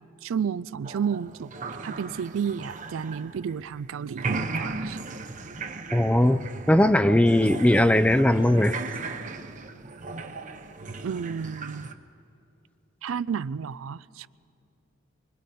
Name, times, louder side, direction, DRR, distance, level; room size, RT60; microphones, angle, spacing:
voice 1, 0.2-1.5 1.8-5.0 11.0-11.9 13.0-14.3, right 7 dB, 75° right, 0.4 m, -31 dB
sound 1, 0.8-3.8 4.1-11.9, right 3 dB, 40° right, 0.8 m, -36 dB
voice 2, 5.9-8.8, left 1 dB, 5° left, 0.4 m, -20 dB
26.0 x 24.0 x 4.2 m
head